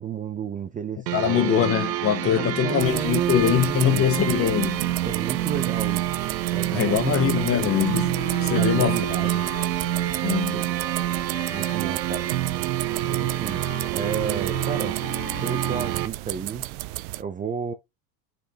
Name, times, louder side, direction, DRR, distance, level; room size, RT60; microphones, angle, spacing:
voice 1, 0.0-1.7 2.2-4.0 5.0-6.1 6.5-7.7 8.5-9.5 10.5-10.7 11.5-12.3 13.1-15.0 15.3-17.7, right 7 dB, 15° right, 0.6 m, -32 dB
voice 2, 1.1-4.9 6.7-9.0 10.2-10.7, left 10 dB, 30° left, 0.8 m, -23 dB
sound 1, 1.1-16.1, right 13 dB, 85° right, 1.0 m, -27 dB
sound 2, 2.8-17.2, right 18 dB, 60° right, 0.6 m, -34 dB
Wind instrument woodwind instrument, 7.6-16.0, left 6 dB, 45° left, 2.5 m, -40 dB
10.0 x 4.3 x 2.9 m
supercardioid pair, 110°, 49 cm